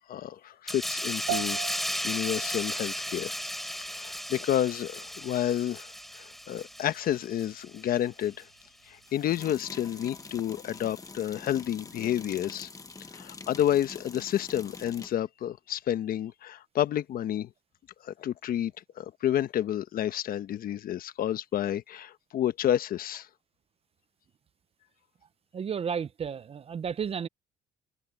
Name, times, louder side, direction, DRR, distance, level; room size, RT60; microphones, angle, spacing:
voice 1, 0.1-3.4 3.9-5.9 6.2-8.5 8.9-12.7 13.1-17.5 18.0-18.7 19.0-23.3, left 11 dB, 60° left, 1.1 m, -30 dB
sound 1, 0.7-7.8 8.2-8.4, equal, ahead, 3.5 m, -35 dB
sound 2, 1.3-10.9, right 20 dB, 90° right, 1.1 m, -43 dB
Kitchen Tap Running water, 5.6-5.7 9.1-15.2, left 4 dB, 20° left, 1.3 m, -45 dB
voice 2, 25.5-27.3, right 7 dB, 35° right, 0.7 m, -32 dB
cardioid pair, 110°, 17 cm